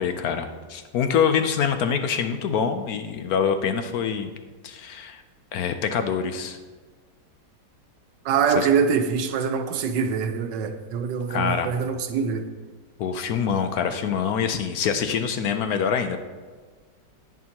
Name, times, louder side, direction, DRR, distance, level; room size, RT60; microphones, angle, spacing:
voice 1, 0.0-4.3 4.6-5.2 5.5-6.6 8.5-8.7 11.3-11.7 13.0-16.3, left 7 dB, 70° left, 1.0 m, -25 dB
voice 2, 8.2-12.5, right 6 dB, 90° right, 1.4 m, -24 dB
10.5 x 8.7 x 2.9 m
omnidirectional pair, 1.8 m